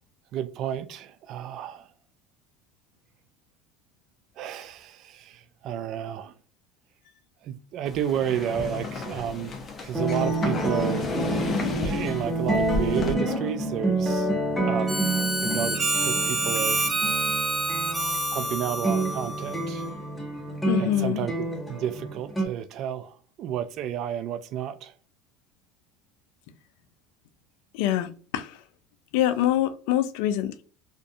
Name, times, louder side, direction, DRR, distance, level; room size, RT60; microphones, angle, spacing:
voice 1, 0.3-1.9 4.4-6.3 7.4-11.1 11.8-14.3 14.7-14.9 15.4-16.8 18.3-19.9 20.8-21.3 21.7-24.9, right 9 dB, 55° right, 0.3 m, -31 dB
sound 1, 7.9-13.1, left 3 dB, 35° left, 0.6 m, -33 dB
sound 2, 9.9-22.5, right 2 dB, 5° left, 0.9 m, -28 dB
Harmonica, 14.9-20.0, right 2 dB, 20° right, 0.8 m, -28 dB
voice 2, 20.7-21.3 27.7-28.6 29.1-30.6, left 12 dB, 70° left, 0.3 m, -25 dB
2.5 x 2.4 x 2.3 m
hypercardioid pair, 80°, 0 cm